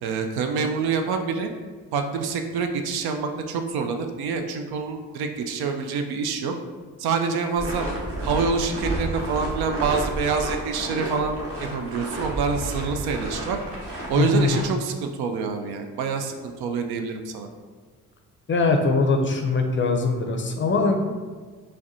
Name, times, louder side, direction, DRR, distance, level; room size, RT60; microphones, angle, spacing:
voice 1, 0.0-1.5 1.9-6.5 7.0-7.9 8.2-13.6 14.1-17.5, right 5 dB, 65° right, 6 dB, 0.5 m, -26 dB
sound 1, 7.6-14.6, right 1 dB, 35° right, 1.2 m, -31 dB
voice 2, 14.2-14.5 18.5-21.0, left 3 dB, 30° left, 3 dB, 0.5 m, -21 dB
4.7 x 2.2 x 2.6 m, 1.4 s
hypercardioid pair, 45°, 42 cm